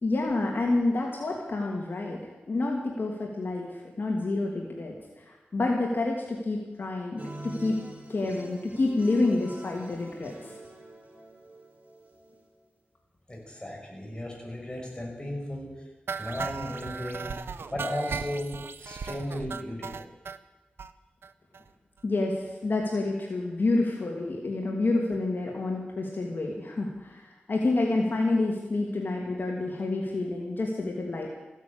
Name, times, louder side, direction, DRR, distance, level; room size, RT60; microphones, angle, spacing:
voice 1, 0.0-2.2 2.5-7.8 8.1-10.5 22.0-31.3, left 2 dB, 60° left, -1 dB, 2.6 m, -28 dB
sound 1, 7.2-12.5, right 1 dB, 40° right, 4.0 m, -44 dB
voice 2, 13.3-15.9 16.1-17.3 17.7-18.5 18.8-20.0, left 1 dB, 25° left, -1 dB, 6.4 m, -35 dB
sound 2, 16.1-20.4 20.8-20.9 21.2-21.3 21.5-21.7 22.0-22.1, right 5 dB, 90° right, 0.7 m, -37 dB
15.5 x 10.0 x 8.8 m, 1.2 s
wide cardioid pair, 70°, 4 cm